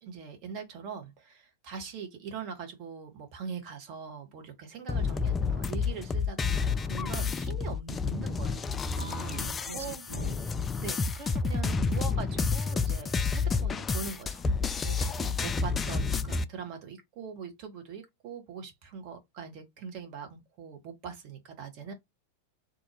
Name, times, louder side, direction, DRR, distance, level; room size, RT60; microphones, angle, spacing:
voice 1, 0.0-8.7 9.7-10.1 10.8-14.4 15.2-21.9, right 6 dB, 40° right, 1.1 m, -42 dB
sound 1, 4.9-16.4, left 4 dB, 20° left, 0.3 m, -30 dB
voice 2, 9.0-10.5 14.8-15.1, right 5 dB, 75° right, 0.4 m, -43 dB
3.8 x 2.6 x 3.0 m
figure-of-eight pair, 90°, 0 cm